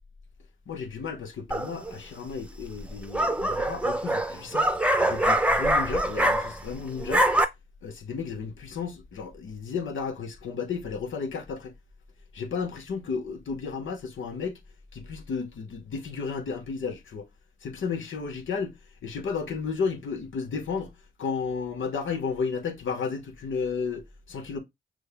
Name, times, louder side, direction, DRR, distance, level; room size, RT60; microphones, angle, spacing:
voice 1, 0.7-4.7 5.0-7.3 7.8-11.7 12.3-14.6 14.9-17.3 17.6-20.9 21.2-24.6, left 5 dB, 75° left, 1.0 m, -33 dB
sound 1, 1.5-1.9 2.8-6.7 7.0-7.4, right 1 dB, 5° right, 0.7 m, -24 dB
6.2 x 2.4 x 3.4 m
cardioid pair, 50°, 20 cm